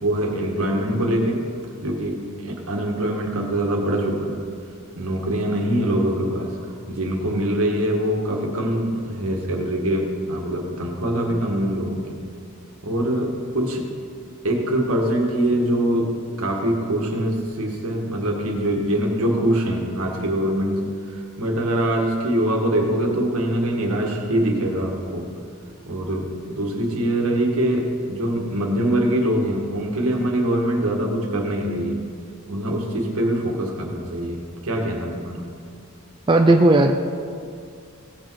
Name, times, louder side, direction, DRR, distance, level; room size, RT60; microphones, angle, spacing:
voice 1, 0.0-1.5 1.8-4.4 4.9-12.2 12.8-13.9 14.4-25.3 25.8-32.0 32.5-35.5, right 1 dB, 80° right, 0 dB, 1.7 m, -23 dB
voice 2, 36.3-36.9, right 2 dB, 20° right, 4 dB, 0.4 m, -14 dB
17.0 x 6.4 x 4.7 m, 2.3 s
head